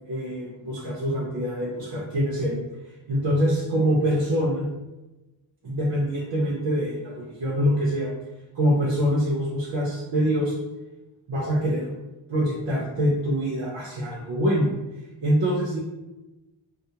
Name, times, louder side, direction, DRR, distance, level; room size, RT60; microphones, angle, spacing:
voice 1, 0.1-2.6 3.1-4.7 5.6-8.1 8.5-10.5 11.3-11.9 12.3-15.8, equal, 70° right, -5 dB, 0.6 m, -25 dB
2.3 x 2.0 x 2.7 m, 1.1 s
wide cardioid pair, 175°, 45 cm